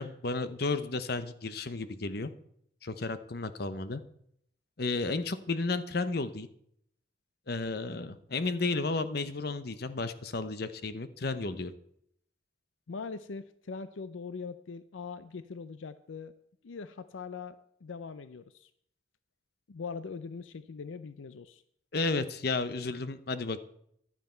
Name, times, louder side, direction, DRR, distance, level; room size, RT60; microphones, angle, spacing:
voice 1, 0.0-2.3 2.8-4.0 4.8-6.5 7.5-11.7 21.9-23.6, left 3 dB, 50° left, 11 dB, 0.8 m, -33 dB
voice 2, 12.9-16.3 16.6-18.7 19.7-21.6, left 5 dB, 75° left, 13 dB, 0.5 m, -41 dB
15.0 x 12.0 x 4.5 m, 0.71 s
head